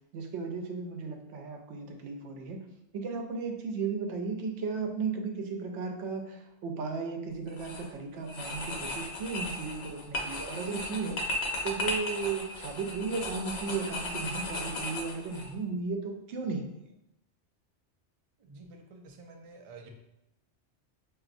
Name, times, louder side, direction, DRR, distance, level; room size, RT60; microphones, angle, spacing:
voice 1, 0.1-2.6 2.9-11.2 11.6-16.8, right 4 dB, 85° right, 3 dB, 0.9 m, -35 dB
sound 1, 7.5-7.9 8.3-15.5, left 1 dB, 85° left, 1.0 m, -36 dB
voice 2, 18.4-19.9, right 3 dB, 60° right, 3 dB, 0.3 m, -50 dB
4.8 x 2.6 x 2.5 m, 0.88 s
omnidirectional pair, 1.2 m